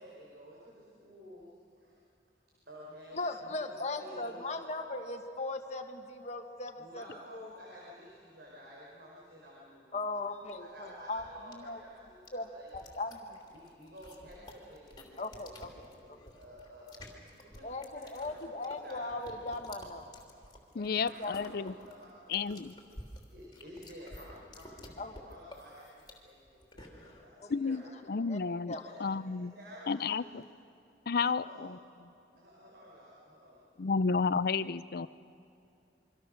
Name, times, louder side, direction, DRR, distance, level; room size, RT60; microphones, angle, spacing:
voice 1, 0.0-1.5 1.8-2.0 2.7-4.6 6.8-10.1 10.5-12.7 13.4-18.3 18.5-19.1 21.1-22.6 22.9-28.3 28.7-30.4 31.1-31.7 32.3-34.0 34.3-34.4, equal, 65° right, -4 dB, 5.0 m, -52 dB
voice 2, 3.1-7.0 7.3-7.5 9.9-11.2 11.5-11.8 12.3-13.4 15.2-16.2 17.6-20.2 20.7-21.4 25.0-25.1 27.4-27.8 28.3-28.4 28.7-29.0, left 2 dB, 40° left, 4 dB, 1.8 m, -39 dB
sound 1, 10.2-27.2, left 1 dB, 25° left, 3.2 m, -53 dB
voice 3, 20.7-21.7 22.3-22.7 27.5-28.7 29.0-29.5 29.9-30.4 31.1-31.8 33.8-35.1, left 5 dB, 60° left, 16 dB, 0.5 m, -31 dB
27.5 x 24.0 x 6.5 m, 2.6 s
head